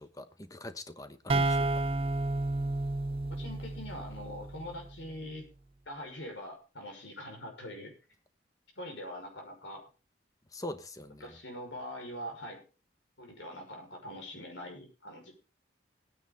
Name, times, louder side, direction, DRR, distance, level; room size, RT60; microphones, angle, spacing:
voice 1, 0.0-1.7 10.5-11.4, left 1 dB, 20° left, 1.0 m, -43 dB
sound 1, 1.3-4.9, right 2 dB, 30° right, 0.6 m, -31 dB
voice 2, 3.3-5.4 5.9-7.9 8.8-9.9 11.2-12.6 13.2-15.3, left 1 dB, 75° left, 5.8 m, -43 dB
17.5 x 9.7 x 4.0 m
head